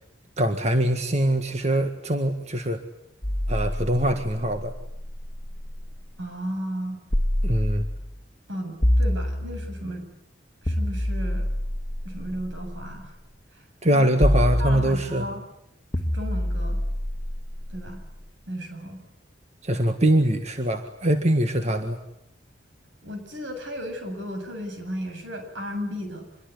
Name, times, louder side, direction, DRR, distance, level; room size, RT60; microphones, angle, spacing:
voice 1, 0.4-2.8 3.5-4.7 7.4-7.9 13.8-15.3 19.6-22.0, right 1 dB, 35° right, 6 dB, 1.8 m, -23 dB
sound 1, 3.2-6.0 7.1-8.2 8.8-9.9 10.7-12.9 14.2-15.3 15.9-18.1, left 1 dB, 25° left, 1.7 m, -26 dB
voice 2, 6.2-7.0 8.5-10.1 10.6-11.5 12.0-13.1 13.5-14.1 14.6-15.4 16.1-16.8 17.7-18.0 18.5-19.0 23.0-26.3, equal, 75° right, 5 dB, 8.0 m, -34 dB
26.0 x 23.0 x 9.7 m, 0.79 s
head